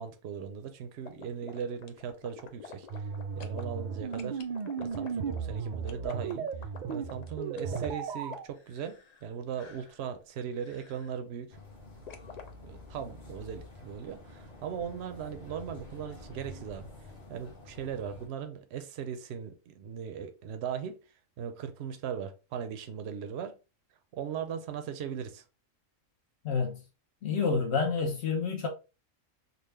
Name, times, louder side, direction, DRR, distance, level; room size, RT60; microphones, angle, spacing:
voice 1, 0.0-3.0 3.4-4.4 4.8-6.5 6.9-11.6 12.6-16.9 17.3-21.0 21.4-23.6 24.1-25.4, right 8 dB, 65° right, 0.8 m, -38 dB
sound 1, 1.0-3.6 4.1-9.3 9.5-10.0 10.6-11.1 12.1-12.5, left 6 dB, 85° left, 0.3 m, -48 dB
sound 2, 2.9-8.5, right 6 dB, 80° right, 0.4 m, -35 dB
sound 3, 11.5-18.3, left 2 dB, 35° left, 1.3 m, -49 dB
voice 2, 26.4-26.8 27.2-28.7, left 5 dB, 60° left, 0.9 m, -28 dB
3.8 x 2.3 x 3.1 m
omnidirectional pair, 1.3 m